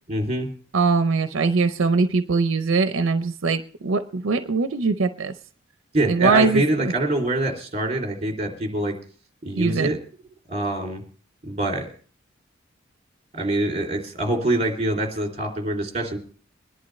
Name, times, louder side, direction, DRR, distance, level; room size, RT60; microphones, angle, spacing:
voice 1, 0.1-0.5 5.9-9.0 9.4-10.0 10.5-11.0 11.4-11.9 13.3-16.2, right 1 dB, 35° right, 1 dB, 2.8 m, -25 dB
voice 2, 0.7-5.3 6.1-6.9 9.5-9.9, right 4 dB, 75° right, 10 dB, 0.6 m, -22 dB
22.0 x 11.0 x 3.1 m, 0.43 s
head